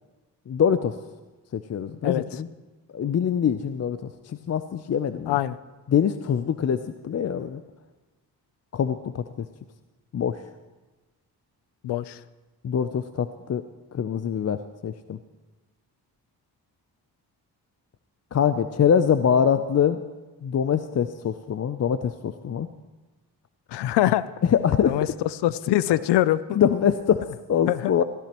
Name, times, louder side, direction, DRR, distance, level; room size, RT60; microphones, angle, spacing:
voice 1, 0.5-1.0 1.5-2.5 2.9-5.4 5.9-7.6 8.7-9.5 10.1-10.4 12.6-13.6 13.9-15.2 18.3-20.0 20.4-22.7 24.4-25.1 26.5-28.0, left 8 dB, 40° left, 11 dB, 0.5 m, -24 dB
voice 2, 11.8-12.2 23.7-24.3 24.8-25.1 25.4-26.6 27.7-28.0, left 14 dB, 85° left, 17 dB, 0.6 m, -23 dB
16.5 x 16.0 x 3.0 m, 1.2 s
cardioid pair, 70°, 40 cm